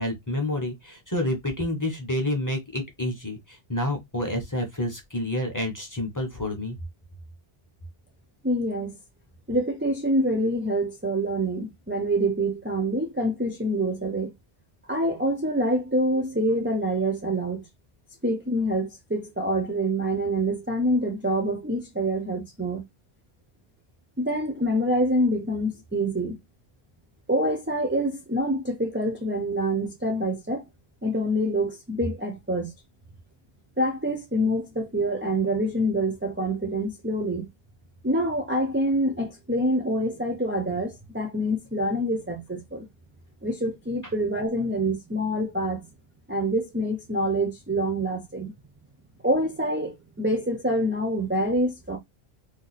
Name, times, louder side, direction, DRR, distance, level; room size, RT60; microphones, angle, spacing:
voice 1, 0.0-6.8, left 1 dB, 20° left, 0.8 m, -29 dB
voice 2, 8.4-8.9 9.5-14.3 14.9-17.6 18.2-22.8 24.2-26.4 27.3-30.6 31.0-32.7 33.8-37.5 38.0-42.9 43.4-45.9 46.3-48.5 49.2-52.0, right 1 dB, 15° right, 0.5 m, -26 dB
2.7 x 2.2 x 4.0 m
omnidirectional pair, 1.0 m